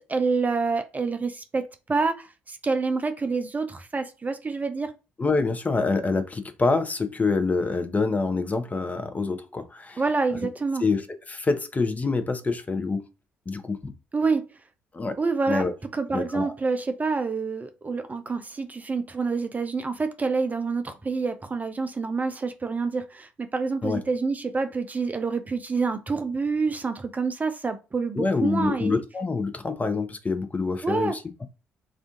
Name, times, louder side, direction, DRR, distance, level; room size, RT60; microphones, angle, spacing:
voice 1, 0.0-4.9 10.0-10.8 14.1-14.5 15.2-15.6 15.9-29.0 30.8-31.2, right 4 dB, 25° right, 0.4 m, -27 dB
voice 2, 5.2-10.0 10.8-13.0 13.5-13.9 14.9-15.2 15.5-15.7 16.1-16.5 23.8-24.0 28.1-31.2, left 3 dB, 25° left, 0.6 m, -26 dB
2.5 x 2.4 x 3.6 m
figure-of-eight pair, 45°, 6 cm